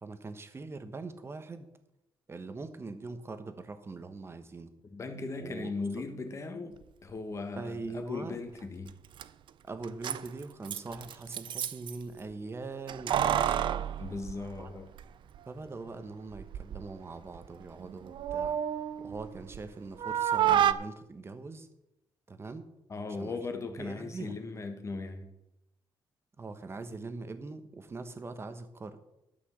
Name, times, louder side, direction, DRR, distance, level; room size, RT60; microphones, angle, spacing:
voice 1, 0.0-1.7 2.3-4.7 5.4-5.7 7.5-8.4 9.6-13.6 14.6-14.7 15.5-18.6 19.0-21.7 22.3-22.7 23.1-23.4 23.8-24.3 26.4-29.0, right 3 dB, 25° right, 1.2 m, -42 dB
voice 2, 4.9-8.9 14.0-14.9 22.9-25.3, left 3 dB, 30° left, 1.6 m, -38 dB
Keys jangling, 8.9-9.0 9.2-9.3 9.8-12.0 12.9-15.0 15.3-15.4 16.3-16.9 17.2-19.7 20.0-20.7, right 10 dB, 65° right, 0.5 m, -30 dB
12.0 x 6.1 x 7.3 m
cardioid pair, 130°, 9 cm